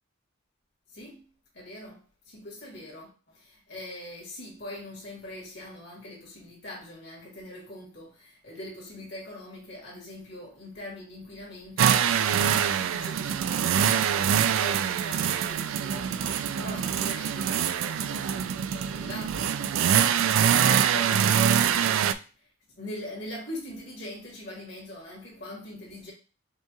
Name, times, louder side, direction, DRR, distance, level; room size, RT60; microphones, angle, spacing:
voice 1, 0.9-1.3 1.5-22.2 22.7-26.1, left 1 dB, 60° left, 1.9 m, -42 dB
sound 1, 11.8-22.1, right 8 dB, 85° right, 0.3 m, -24 dB
5.5 x 2.3 x 2.9 m
head